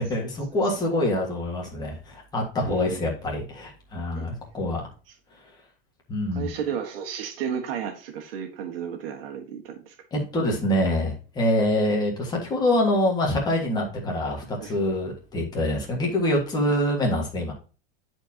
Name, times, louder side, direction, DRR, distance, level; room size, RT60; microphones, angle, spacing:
voice 1, 0.0-4.9 6.1-6.5 10.1-17.5, left 1 dB, 15° left, -1 dB, 1.7 m, -25 dB
voice 2, 2.6-3.0 4.1-4.3 6.3-9.9 14.6-14.8 16.7-16.8, right 8 dB, 80° right, 3 dB, 1.6 m, -33 dB
10.5 x 4.5 x 2.8 m, 0.35 s
supercardioid pair, 170°, 29 cm